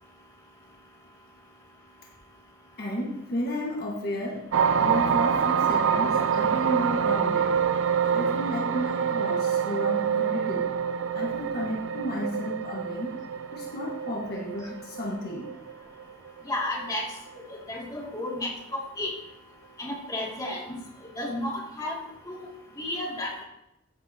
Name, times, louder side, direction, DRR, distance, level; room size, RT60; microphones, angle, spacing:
voice 1, 2.8-4.5 4.8-7.6 8.1-10.7 11.1-13.2 13.5-15.5 18.0-18.1, equal, 50° left, -3 dB, 1.5 m, -32 dB
sound 1, 4.5-16.9 17.3-17.6, right 7 dB, 75° right, 0.5 m, -26 dB
voice 2, 16.4-17.1 17.7-18.5 19.0-19.1 19.8-20.6 21.2-22.0 22.3-22.5 22.8-23.4, left 1 dB, 20° left, -3 dB, 2.4 m, -32 dB
15.0 x 7.6 x 2.8 m, 0.85 s
head